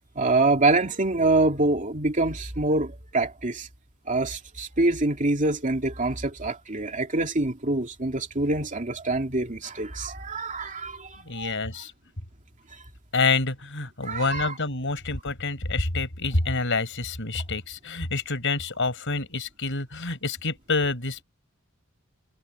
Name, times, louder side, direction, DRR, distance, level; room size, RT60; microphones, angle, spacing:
voice 1, 0.2-3.7 4.1-11.6 14.0-14.5, right 2 dB, 35° right, 2.6 m, -25 dB
voice 2, 11.2-11.9 13.1-21.2, left 3 dB, 60° left, 5.3 m, -27 dB
head